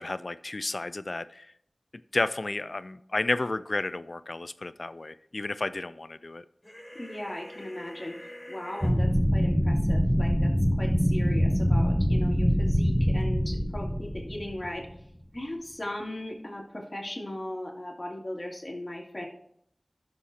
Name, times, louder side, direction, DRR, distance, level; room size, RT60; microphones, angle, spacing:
voice 1, 0.0-1.5 2.1-6.4, left 2 dB, 65° left, 15 dB, 0.4 m, -32 dB
sound 1, 6.6-8.9, left 1 dB, 15° left, 3.9 m, -45 dB
voice 2, 6.9-8.2 8.5-10.5 10.8-14.9 15.3-19.3, left 1 dB, 40° left, -2 dB, 2.4 m, -37 dB
sound 2, 8.8-15.0, equal, ahead, 0.7 m, -24 dB
17.5 x 6.5 x 2.8 m, 0.73 s
wide cardioid pair, 55°, 0 cm